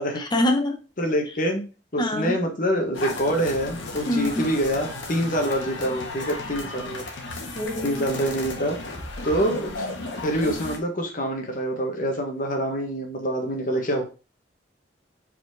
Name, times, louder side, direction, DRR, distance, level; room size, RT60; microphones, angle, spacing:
voice 1, 0.2-0.8 2.0-2.4 4.0-4.5 7.6-7.9, left 1 dB, 25° left, 4 dB, 0.9 m, -24 dB
voice 2, 1.0-1.6 1.9-7.0 7.8-8.8 9.2-9.9 10.2-14.0, equal, 45° left, 3 dB, 1.5 m, -26 dB
sound 1, 2.9-10.8, left 2 dB, 80° left, 1.5 m, -34 dB
5.1 x 4.4 x 4.7 m, 0.33 s
head